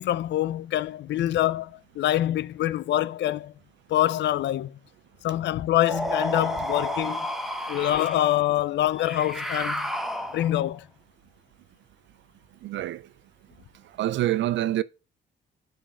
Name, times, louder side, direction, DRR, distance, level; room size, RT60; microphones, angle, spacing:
voice 1, 0.0-3.5 3.9-4.8 5.2-7.3 7.7-9.9 10.3-10.9, left 13 dB, 65° left, 0.4 m, -25 dB
sound 1, 5.9-8.3 9.0-10.7, equal, ahead, 0.9 m, -31 dB
voice 2, 12.6-13.1 14.0-14.8, right 13 dB, 70° right, 0.5 m, -26 dB
7.8 x 5.2 x 4.9 m
cardioid pair, 90°, 20 cm